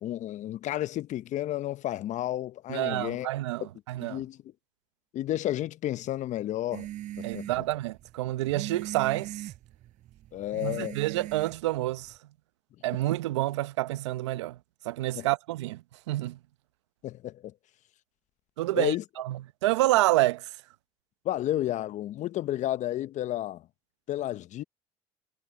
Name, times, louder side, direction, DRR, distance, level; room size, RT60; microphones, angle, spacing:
voice 1, 0.0-3.3 4.0-4.4 5.1-6.9 7.2-7.5 10.3-11.0 15.1-15.3 17.0-17.5 18.7-19.0 21.2-23.6 24.1-24.6, left 13 dB, 55° left, 0.9 m, -31 dB
voice 2, 2.7-4.2 7.2-9.5 10.6-12.1 12.8-14.6 14.8-16.4 18.6-20.5, right 17 dB, 90° right, 0.8 m, -28 dB
sound 1, 6.7-12.2, right 13 dB, 60° right, 4.7 m, -41 dB
hypercardioid pair, 70°, 14 cm